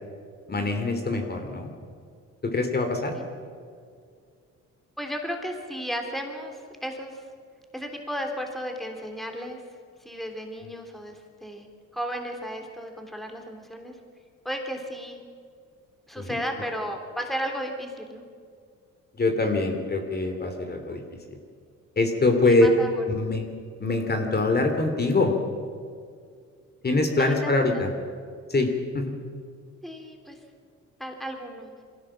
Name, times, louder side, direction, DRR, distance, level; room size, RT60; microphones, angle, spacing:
voice 1, 0.5-1.7 2.4-3.1 16.2-16.4 19.2-21.0 22.0-22.7 23.0-23.4 23.8-25.3 26.8-27.9 28.5-29.1, left 2 dB, 30° left, 5 dB, 3.0 m, -24 dB
voice 2, 5.0-7.2 7.7-9.6 10.0-11.7 11.9-14.0 14.4-15.2 16.1-18.2 22.4-22.9 27.2-27.8 29.8-30.4 31.0-31.7, equal, ahead, 3 dB, 3.3 m, -34 dB
23.5 x 16.5 x 7.4 m, 2.2 s
cardioid pair, 90°, 30 cm